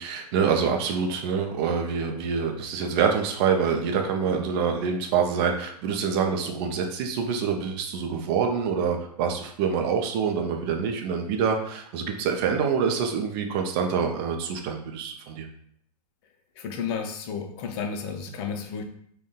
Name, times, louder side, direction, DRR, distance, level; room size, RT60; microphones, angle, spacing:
voice 1, 0.0-15.5, right 6 dB, 40° right, 3 dB, 0.4 m, -26 dB
voice 2, 16.6-18.8, left 6 dB, 40° left, 4 dB, 0.5 m, -32 dB
3.7 x 2.2 x 2.2 m, 0.65 s
hypercardioid pair, 120°, 21 cm